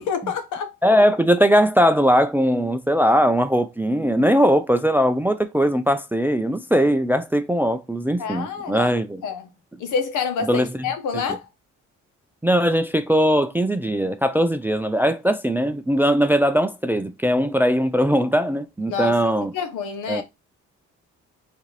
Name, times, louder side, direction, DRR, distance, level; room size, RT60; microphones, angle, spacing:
voice 1, 0.0-0.8 8.2-8.9 9.2-9.5 9.8-11.5 18.9-19.2 19.5-20.2, left 6 dB, 80° left, 1.0 m, -27 dB
voice 2, 0.8-9.2 10.5-10.7 11.1-11.2 12.4-19.5 20.1-20.2, equal, 5° right, 0.3 m, -20 dB
4.7 x 2.7 x 3.1 m
cardioid pair, 90°, 30 cm